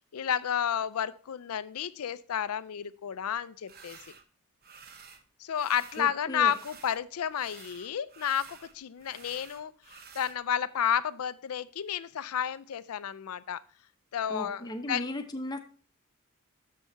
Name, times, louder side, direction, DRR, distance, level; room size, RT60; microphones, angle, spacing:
voice 1, 0.1-4.0 5.4-13.6 14.1-15.1, left 9 dB, 80° left, 16 dB, 0.4 m, -31 dB
sound 1, 3.7-4.2 4.6-5.2 5.5-7.0 7.3-10.4, right 6 dB, 45° right, 0.8 m, -51 dB
voice 2, 6.0-6.5 14.3-15.6, left 1 dB, 20° left, 6 dB, 0.8 m, -36 dB
6.9 x 6.3 x 4.4 m, 0.41 s
head